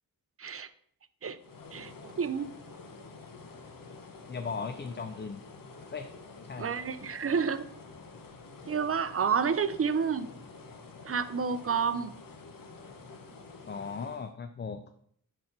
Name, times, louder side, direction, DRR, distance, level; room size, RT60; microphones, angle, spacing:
sound 1, 1.4-14.3, left 3 dB, 65° left, 0.9 m, -49 dB
voice 1, 1.7-2.5 6.6-7.7 8.7-10.3 11.0-12.1, right 6 dB, 40° right, 13 dB, 0.5 m, -29 dB
voice 2, 4.3-5.4 5.9-6.1 6.4-6.8 13.7-14.9, left 5 dB, 30° left, 8 dB, 0.4 m, -37 dB
4.4 x 4.2 x 5.2 m, 0.65 s
cardioid pair, 50°, 36 cm